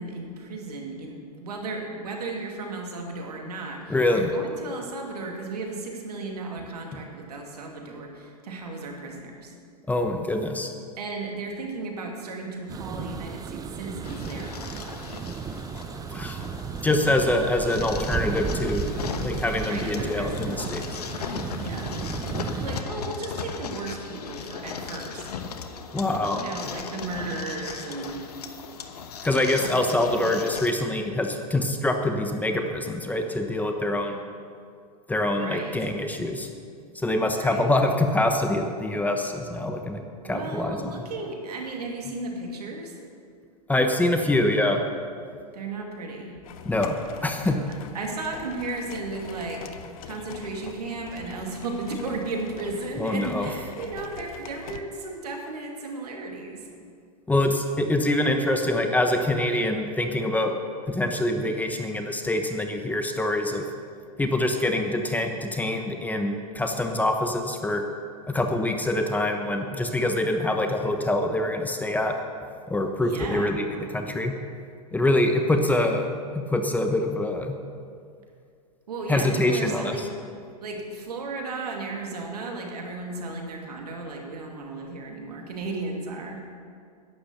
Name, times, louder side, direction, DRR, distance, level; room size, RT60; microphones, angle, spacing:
voice 1, 0.0-9.5 11.0-15.1 19.7-20.6 21.6-21.9 22.5-25.3 26.3-28.4 35.4-35.7 37.3-37.6 40.2-43.0 45.5-46.4 47.9-49.7 50.0-56.7 73.0-73.6 78.9-80.1 80.6-86.4, right 3 dB, 80° right, 1 dB, 2.5 m, -35 dB
voice 2, 3.9-4.3 9.9-10.7 16.1-16.4 16.8-18.9 19.2-21.0 25.9-26.4 29.2-34.2 35.1-36.5 36.9-41.0 43.7-44.8 46.6-47.6 53.0-53.5 57.3-60.5 60.9-63.7 64.2-67.8 68.3-72.1 72.7-74.3 74.9-76.1 76.5-77.6 79.1-80.1, left 1 dB, 10° left, 4 dB, 1.0 m, -25 dB
sound 1, 12.7-22.8, right 6 dB, 20° right, 0.7 m, -34 dB
sound 2, 14.0-30.7, left 6 dB, 80° left, 1.1 m, -37 dB
sound 3, 46.4-54.8, left 8 dB, 65° left, 1.0 m, -43 dB
11.5 x 10.0 x 6.8 m, 2.3 s
hypercardioid pair, 110°, 20 cm